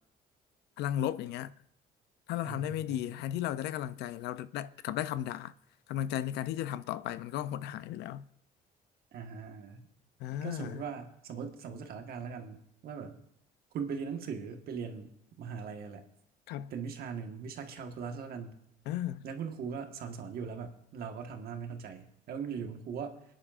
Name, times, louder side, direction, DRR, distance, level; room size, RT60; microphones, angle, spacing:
voice 1, 0.8-1.5 2.3-5.5 5.9-8.3 10.2-10.8 16.5-16.7 18.9-19.2, left 12 dB, 80° left, 0.5 m, -35 dB
voice 2, 2.4-3.1 9.1-9.9 10.4-13.2 13.7-16.0 16.7-18.6 19.2-23.2, right 6 dB, 65° right, 1.4 m, -40 dB
25.0 x 10.0 x 2.5 m
cardioid pair, 110°, 17 cm